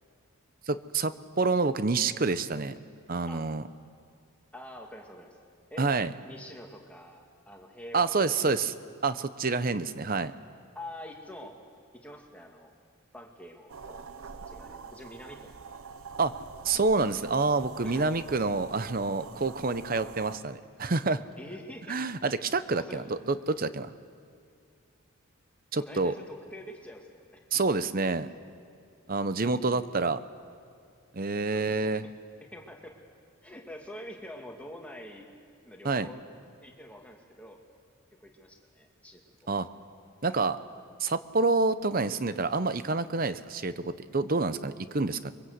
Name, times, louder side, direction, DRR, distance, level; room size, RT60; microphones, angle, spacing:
voice 1, 0.7-2.8 3.1-3.6 5.8-6.1 7.9-8.8 9.0-10.3 16.2-16.3 16.6-21.2 21.9-23.9 25.7-26.1 27.5-28.3 29.1-30.2 31.1-32.0 35.8-36.1 39.5-39.7 40.2-40.6 41.0-45.3, right 3 dB, 40° right, 13 dB, 0.8 m, -28 dB
voice 2, 4.5-5.4 5.7-5.9 6.2-8.5 10.7-11.6 11.9-12.7 13.1-15.6 17.8-18.1 21.4-22.0 22.7-23.0 25.7-27.4 31.5-32.1 32.4-33.0 33.4-35.3 35.6-36.2 36.6-37.6 38.2-39.5, left 1 dB, 5° left, 1 dB, 2.0 m, -46 dB
sound 1, 13.7-20.4, right 5 dB, 75° right, 0.8 m, -45 dB
23.5 x 23.0 x 8.0 m, 2.4 s
head